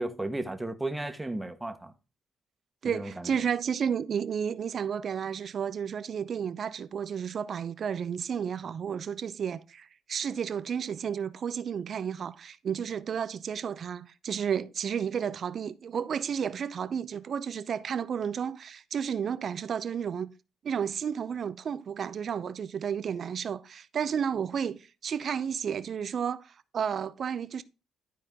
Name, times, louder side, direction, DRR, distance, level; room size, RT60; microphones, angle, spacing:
voice 1, 0.0-1.9 2.8-3.3, right 2 dB, 10° right, 1.2 m, -34 dB
voice 2, 2.8-20.3 20.6-27.6, right 7 dB, 55° right, 0.6 m, -32 dB
12.0 x 4.4 x 3.7 m
cardioid pair, 90°, 0 cm